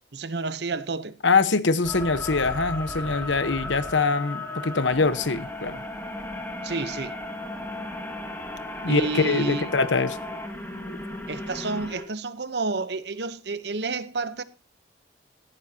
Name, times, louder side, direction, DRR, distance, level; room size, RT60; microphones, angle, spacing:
voice 1, 0.1-1.2 6.6-7.2 8.8-9.8 11.3-14.4, right 3 dB, 60° right, 0.9 m, -30 dB
voice 2, 1.2-5.8 8.8-10.2 10.9-11.0, left 4 dB, 85° left, 1.1 m, -23 dB
sound 1, 1.8-12.0, left 2 dB, 10° left, 2.1 m, -35 dB
17.5 x 14.0 x 2.8 m
head